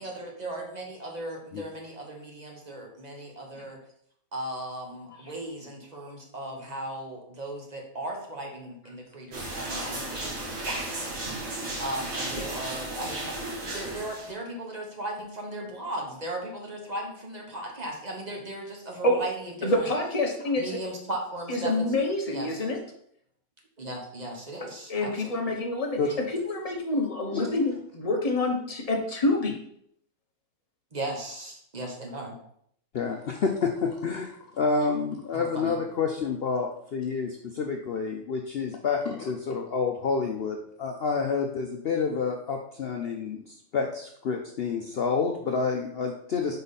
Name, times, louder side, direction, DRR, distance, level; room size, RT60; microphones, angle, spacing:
voice 1, 0.0-3.8 4.3-13.4 13.6-19.9 20.5-21.7 22.3-22.7 23.8-25.6 30.9-32.3 35.3-35.8, right 1 dB, 30° right, 0 dB, 1.1 m, -37 dB
sound 1, 9.3-14.3, right 2 dB, 55° right, 1.8 m, -34 dB
voice 2, 19.6-20.8 21.5-22.8 24.9-26.0 26.5-29.5, left 2 dB, 30° left, 1 dB, 0.9 m, -27 dB
voice 3, 32.9-46.6, left 5 dB, 65° left, 2 dB, 0.6 m, -29 dB
5.3 x 4.8 x 4.1 m, 0.70 s
omnidirectional pair, 1.6 m